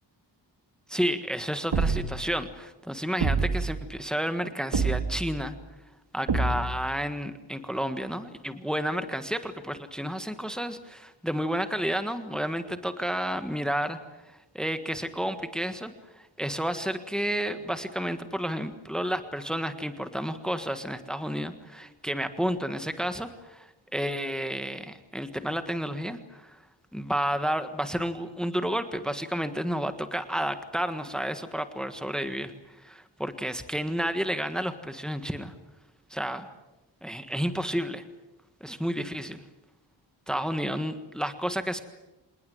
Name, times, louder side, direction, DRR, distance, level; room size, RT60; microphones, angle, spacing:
voice 1, 0.9-5.5 6.1-14.0 14.5-26.6 26.9-32.5 32.8-35.5 36.1-36.5 37.0-38.0 38.6-39.4 40.3-41.8, equal, ahead, 9 dB, 1.5 m, -31 dB
sound 1, 1.7-2.3 3.2-3.8 4.7-5.3 6.3-6.9, right 4 dB, 70° right, 2.5 m, -27 dB
27.0 x 19.5 x 9.4 m, 1.0 s
wide cardioid pair, 140°, 45 cm